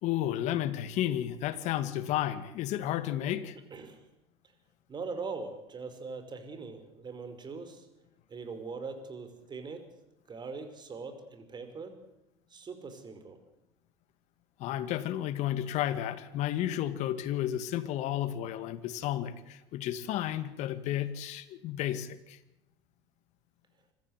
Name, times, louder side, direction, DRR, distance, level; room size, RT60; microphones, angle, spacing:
voice 1, 0.0-3.6 14.6-22.4, left 12 dB, 65° left, 13 dB, 2.1 m, -32 dB
voice 2, 3.7-4.0 4.9-7.9 8.3-9.9 10.3-12.0 12.5-13.4, right 4 dB, 35° right, 8 dB, 5.5 m, -41 dB
25.5 x 15.0 x 8.2 m, 0.92 s
hypercardioid pair, 80°, 13 cm